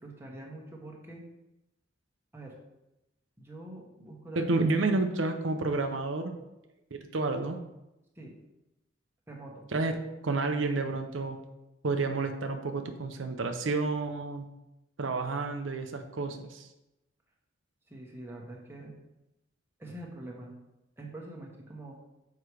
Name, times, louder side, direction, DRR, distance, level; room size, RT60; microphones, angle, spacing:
voice 1, 0.0-1.2 2.3-2.6 3.4-4.6 8.1-8.3 9.3-9.7 17.9-18.9 19.8-20.5 21.0-22.0, right 1 dB, 15° right, -1 dB, 1.3 m, -45 dB
voice 2, 4.4-6.3 6.9-7.6 9.7-10.0 10.2-11.4 11.8-14.5 15.0-16.7, right 3 dB, 80° right, 5 dB, 0.7 m, -30 dB
6.7 x 4.7 x 4.8 m, 0.93 s
head